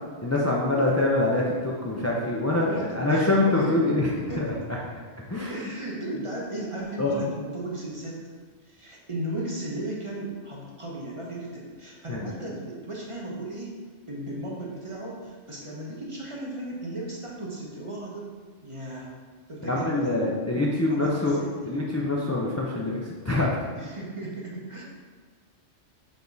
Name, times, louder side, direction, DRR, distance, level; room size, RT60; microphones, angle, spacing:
voice 1, 0.2-4.1 4.4-4.5 5.3-5.7 7.0-7.2 12.1-12.3 19.7-23.7, left 2 dB, 20° left, -4 dB, 0.4 m, -25 dB
voice 2, 2.6-4.6 5.5-8.2 8.6-13.8 14.1-18.3 18.6-19.1 19.5-20.3 20.9-21.7 23.7-24.8, right 1 dB, 25° right, -4 dB, 0.9 m, -35 dB
7.0 x 3.6 x 4.0 m, 1.6 s
omnidirectional pair, 1.3 m